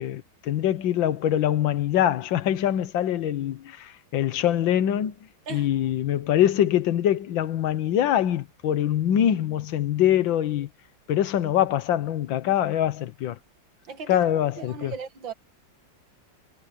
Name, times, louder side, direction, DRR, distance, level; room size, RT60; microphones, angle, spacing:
voice 1, 0.0-5.1 5.5-10.7 11.1-13.4 14.1-14.9, left 11 dB, 85° left, 1.7 m, -24 dB
voice 2, 13.9-14.3 14.6-15.3, right 6 dB, 85° right, 2.5 m, -37 dB
omnidirectional pair, 2.0 m